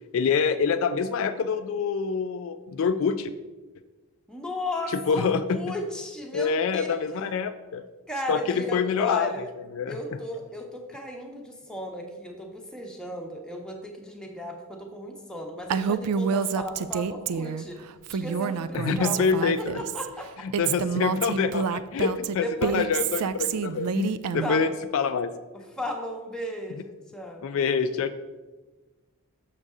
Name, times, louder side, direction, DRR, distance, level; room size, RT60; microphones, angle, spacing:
voice 1, 0.1-3.3 4.9-5.7 6.3-7.8 8.3-9.3 9.7-10.0 18.7-19.8 20.4-25.3 27.4-28.1, left 5 dB, 60° left, 10 dB, 0.3 m, -26 dB
voice 2, 4.3-7.0 8.1-9.5 9.9-17.8 18.1-19.2 19.6-20.3 22.4-22.8 24.4-24.7 25.5-27.4, left 1 dB, 5° left, 1 dB, 0.8 m, -35 dB
Female speech woman speaking, 15.7-17.6 18.0-20.1 20.5-24.7, right 6 dB, 90° right, 0.3 m, -28 dB
6.6 x 6.4 x 3.6 m, 1.2 s
head